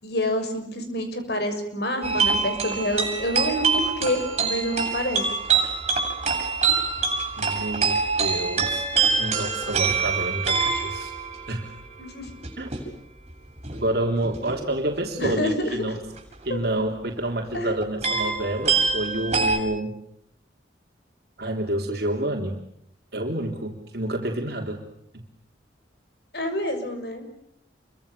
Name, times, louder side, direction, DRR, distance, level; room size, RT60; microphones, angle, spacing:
voice 1, 0.0-5.2 12.0-12.3 15.2-15.8 16.5-16.6 17.5-17.7 26.3-27.3, left 1 dB, 60° left, 7 dB, 6.5 m, -27 dB
sound 1, 2.0-11.8 12.3-12.8 13.6-13.8 14.2-14.6 15.9-16.4 17.5-17.6 17.8-19.6, right 5 dB, 35° right, 7.9 m, -25 dB
voice 2, 7.4-8.8 9.2-11.1 11.5-11.7 12.6-12.8 13.7-16.0 16.4-20.0 21.4-22.6 23.1-24.8, right 1 dB, 55° right, 2 dB, 3.5 m, -28 dB
29.0 x 24.5 x 6.8 m, 0.74 s
head